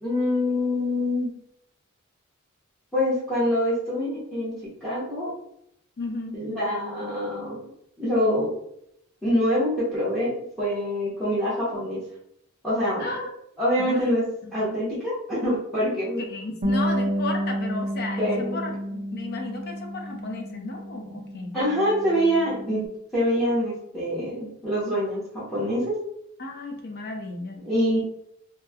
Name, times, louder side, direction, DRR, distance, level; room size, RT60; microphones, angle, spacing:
voice 1, 0.0-1.3 2.9-4.5 4.8-5.3 6.3-7.6 8.0-8.5 9.2-12.0 12.6-13.1 13.6-14.2 14.5-16.2 18.2-18.6 21.5-22.8 23.1-26.0 27.6-28.0, equal, ahead, -10 dB, 0.7 m, -25 dB
voice 2, 6.0-6.5 13.0-13.3 13.8-14.1 14.4-14.5 16.2-21.6 26.4-27.7, left 2 dB, 50° left, 3 dB, 0.5 m, -34 dB
Bass guitar, 16.6-22.9, equal, 30° right, 0.3 m, -30 dB
2.9 x 2.1 x 2.2 m, 0.76 s
head